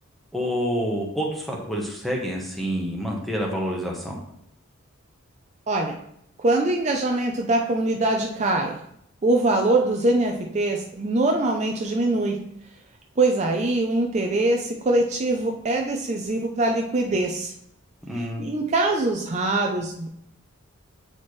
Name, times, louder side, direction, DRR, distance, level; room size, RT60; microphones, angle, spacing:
voice 1, 0.3-4.2 18.0-18.4, equal, ahead, -1 dB, 1.1 m, -28 dB
voice 2, 6.4-8.8 9.2-12.4 13.2-17.5 18.1-20.1, right 2 dB, 30° right, 2 dB, 0.5 m, -23 dB
8.8 x 4.3 x 3.2 m, 0.73 s
head